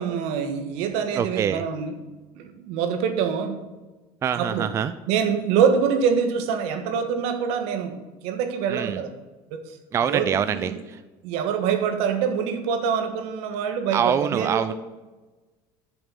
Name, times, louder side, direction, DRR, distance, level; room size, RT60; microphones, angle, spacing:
voice 1, 0.0-2.0 2.4-3.7 4.3-4.7 5.1-9.1 9.5-9.6 10.0-10.8 11.2-14.7, right 7 dB, 75° right, 7 dB, 1.4 m, -25 dB
voice 2, 1.2-1.6 4.2-4.9 8.7-9.0 9.9-11.0 13.9-14.7, right 8 dB, 25° right, 12 dB, 0.4 m, -25 dB
6.9 x 6.9 x 7.4 m, 1.2 s
cardioid pair, 135°, 11 cm